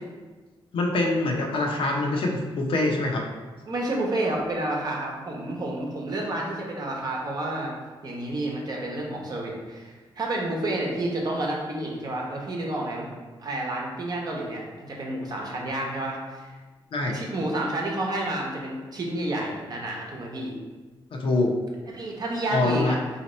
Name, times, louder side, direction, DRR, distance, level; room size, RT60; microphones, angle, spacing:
voice 1, 0.7-3.3 16.9-17.2 21.1-21.5 22.5-23.0, left 2 dB, 70° left, 0 dB, 0.7 m, -24 dB
voice 2, 3.7-7.7 8.0-13.1 13.4-16.5 17.1-20.5 21.9-23.0, right 1 dB, 45° right, -1 dB, 0.8 m, -30 dB
4.0 x 2.9 x 4.2 m, 1.3 s
wide cardioid pair, 145°, 10 cm